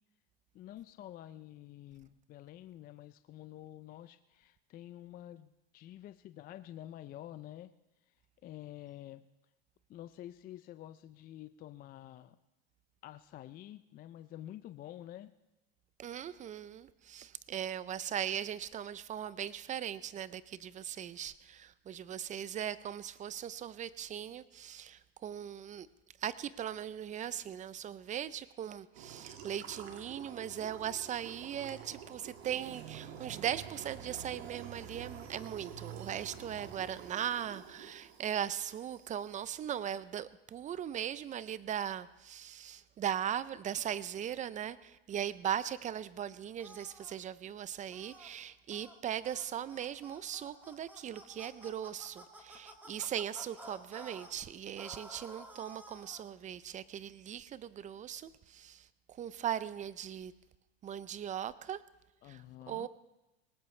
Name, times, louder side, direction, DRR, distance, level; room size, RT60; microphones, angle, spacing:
voice 1, 0.5-7.7 8.4-9.2 9.9-12.4 13.0-15.3 62.2-62.9, left 13 dB, 30° left, 12 dB, 0.4 m, -49 dB
voice 2, 16.0-25.9 26.2-60.3 60.8-61.8 62.2-62.9, right 10 dB, 25° right, 17 dB, 0.5 m, -39 dB
sound 1, 28.9-39.4, right 8 dB, 90° right, 2.0 m, -49 dB
sound 2, 46.6-47.1 47.9-48.3 48.7-48.9 49.2-49.4 49.7-54.3 54.8-56.2, right 1 dB, 5° right, 2.2 m, -52 dB
19.5 x 18.5 x 3.3 m, 0.98 s
supercardioid pair, 115°, 30 cm